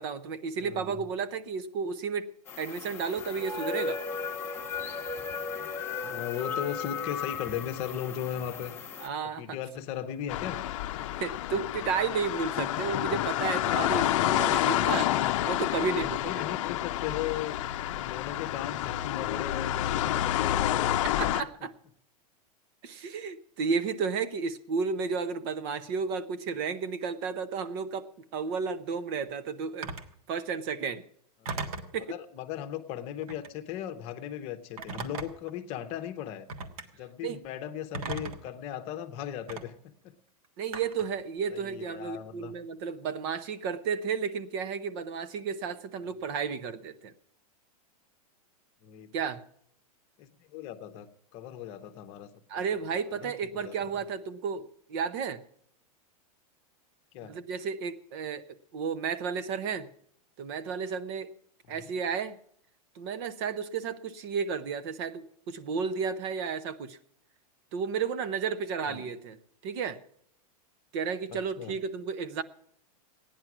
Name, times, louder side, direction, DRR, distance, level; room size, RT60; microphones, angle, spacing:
voice 1, 0.0-2.3 2.6-4.0 9.0-9.6 11.2-16.2 16.5-16.6 21.2-21.7 22.8-28.1 28.3-29.9 30.3-31.0 31.9-32.2 37.2-37.4 40.6-47.1 49.1-49.4 52.5-55.4 57.3-58.5 58.7-59.9 60.4-61.3 61.7-62.4 62.9-67.0 67.7-69.4 69.6-70.0 70.9-72.4, right 5 dB, 40° right, 12 dB, 0.8 m, -32 dB
voice 2, 0.6-1.0 6.0-8.7 9.4-10.6 15.8-17.6 17.9-21.0 31.4-31.7 32.0-36.5 37.0-40.2 41.5-42.5 48.8-49.1 50.2-51.1 51.3-52.3 52.6-52.7 52.9-53.7 57.1-57.3 61.7-61.9 68.8-69.1 71.3-71.8, left 10 dB, 30° left, 9 dB, 0.9 m, -37 dB
sound 1, 2.5-9.1, left 5 dB, 10° left, 1.1 m, -36 dB
sound 2, 10.3-21.4, left 13 dB, 55° left, 0.6 m, -29 dB
Telephone, 29.8-30.1 31.5-32.0 33.2-33.6 34.8-35.5 36.5-36.9 37.9-38.5 39.5-39.6 40.7-41.1, right 4 dB, 70° right, 1.6 m, -37 dB
15.5 x 10.5 x 6.0 m, 0.67 s
supercardioid pair, 160°, 19 cm